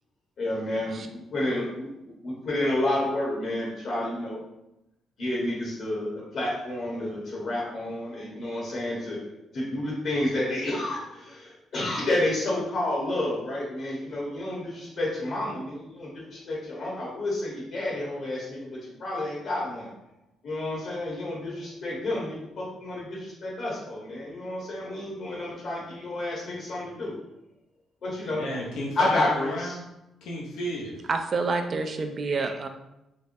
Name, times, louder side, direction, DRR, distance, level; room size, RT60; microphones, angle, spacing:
voice 1, 0.4-4.4 5.2-9.2 9.5-19.9 20.4-27.1 28.0-28.4 29.0-29.8, left 1 dB, 65° left, -5 dB, 1.1 m, -30 dB
voice 2, 28.4-29.8 30.2-31.0, left 1 dB, 85° left, -3 dB, 0.6 m, -33 dB
voice 3, 31.1-32.7, right 4 dB, 45° right, 6 dB, 0.4 m, -28 dB
3.4 x 3.1 x 2.6 m, 0.89 s
cardioid pair, 90°, 0 cm